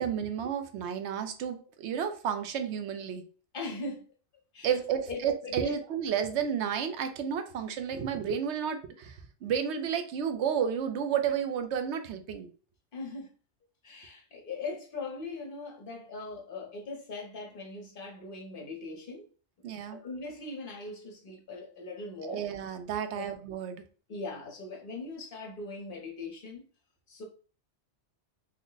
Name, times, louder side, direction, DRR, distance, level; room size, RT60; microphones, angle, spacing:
voice 1, 0.0-3.2 4.6-9.2 9.4-12.5 19.6-20.0 22.2-23.8, right 8 dB, 75° right, 0.9 m, -31 dB
voice 2, 3.5-4.0 4.5-4.7 5.1-5.8 12.9-13.3 13.8-19.3 19.9-22.4 23.1-23.3 24.1-26.6 27.1-27.2, left 3 dB, 50° left, 1.0 m, -40 dB
3.3 x 2.1 x 3.8 m
omnidirectional pair, 1.2 m